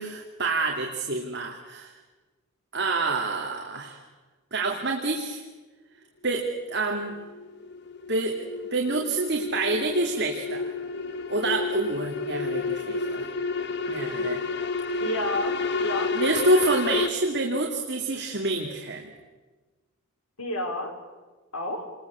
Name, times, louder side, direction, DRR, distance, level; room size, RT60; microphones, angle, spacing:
voice 1, 0.0-1.9 2.7-4.0 4.5-5.4 6.2-7.1 8.1-8.4 8.7-10.7 11.3-13.2 13.9-14.4 14.9-15.0 16.1-19.1, right 2 dB, 50° right, 1 dB, 2.6 m, -27 dB
sound 1, 6.6-17.1, left 4 dB, 50° left, 1.3 m, -30 dB
voice 2, 15.0-16.1 20.4-21.0 21.5-21.9, left 1 dB, 80° left, 3 dB, 4.7 m, -30 dB
28.5 x 21.0 x 8.5 m, 1.3 s
head